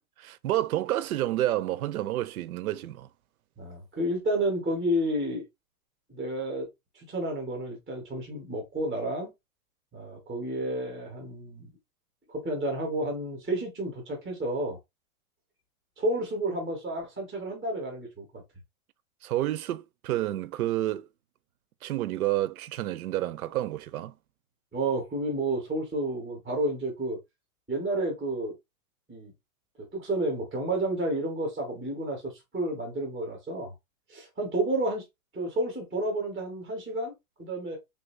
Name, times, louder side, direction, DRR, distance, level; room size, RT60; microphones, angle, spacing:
voice 1, 0.4-3.1 19.2-21.1 21.8-24.1, right 14 dB, 80° right, 0.5 m, -29 dB
voice 2, 3.6-5.4 6.1-6.7 6.9-9.3 9.9-11.7 12.3-14.8 16.0-18.4 24.7-27.2 27.7-28.5 29.1-29.3 29.9-33.7 34.1-35.0 35.3-37.1 37.4-37.8, right 1 dB, ahead, 0.5 m, -31 dB
3.4 x 2.6 x 3.2 m
supercardioid pair, 175°, 43 cm